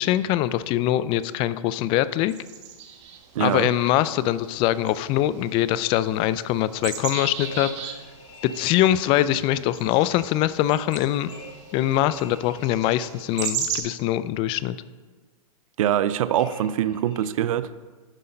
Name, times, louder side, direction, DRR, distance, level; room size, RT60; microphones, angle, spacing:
voice 1, 0.0-2.3 3.4-7.7 8.4-11.3 11.7-14.8, left 13 dB, 30° left, 0.4 m, -23 dB
sound 1, 2.3-13.8, right 8 dB, 55° right, 1.4 m, -37 dB
voice 2, 3.3-3.7 15.8-17.8, right 10 dB, 70° right, 0.5 m, -23 dB
sound 2, 7.4-9.7 11.3-13.4 16.3-17.2, left 1 dB, 75° left, 2.5 m, -45 dB
9.9 x 5.7 x 5.2 m
hypercardioid pair, 135°, 18 cm